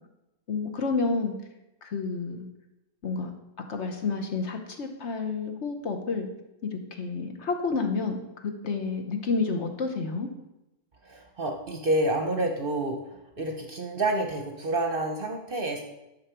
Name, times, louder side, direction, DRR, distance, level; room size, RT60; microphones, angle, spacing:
voice 1, 0.5-1.3 1.8-2.5 3.0-3.3 3.7-6.3 6.7-8.2 8.4-10.3, left 4 dB, 55° left, 5 dB, 1.2 m, -29 dB
voice 2, 11.0-13.0 13.4-15.8, right 2 dB, 45° right, 3 dB, 0.9 m, -28 dB
10.5 x 6.1 x 4.5 m, 0.93 s
omnidirectional pair, 1.5 m